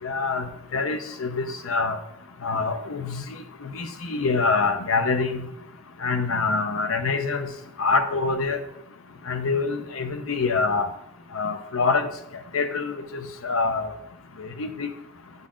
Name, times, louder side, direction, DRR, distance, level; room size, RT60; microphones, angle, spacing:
voice 1, 0.0-0.5 0.7-2.0 2.4-3.2 3.6-5.4 6.0-7.5 7.8-8.6 9.3-10.9 11.3-12.1 12.5-12.9 13.4-13.9 14.4-14.9, left 4 dB, 80° left, 7 dB, 0.7 m, -25 dB
8.6 x 4.0 x 3.7 m, 0.78 s
head